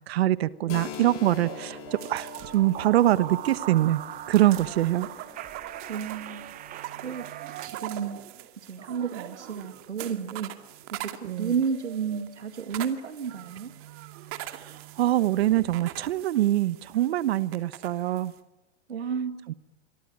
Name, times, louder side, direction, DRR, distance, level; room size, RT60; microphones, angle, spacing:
voice 1, 0.1-1.8 2.1-4.0 4.3-5.1 11.2-11.5 14.5-18.3 19.5-19.6, right 14 dB, 60° right, 16 dB, 1.4 m, -24 dB
sound 1, 0.6-7.7, right 12 dB, 25° right, 0.9 m, -41 dB
Keyboard (musical), 0.7-8.1, left 11 dB, 40° left, 4.1 m, -45 dB
sound 2, 0.7-18.4, right 14 dB, 40° right, 2.4 m, -43 dB
voice 2, 5.9-6.6 7.0-8.2 8.6-10.5 10.9-13.7 18.9-19.5, right 6 dB, 90° right, 7 dB, 2.4 m, -32 dB
27.0 x 23.5 x 8.8 m, 1.1 s
hypercardioid pair, 115°, 34 cm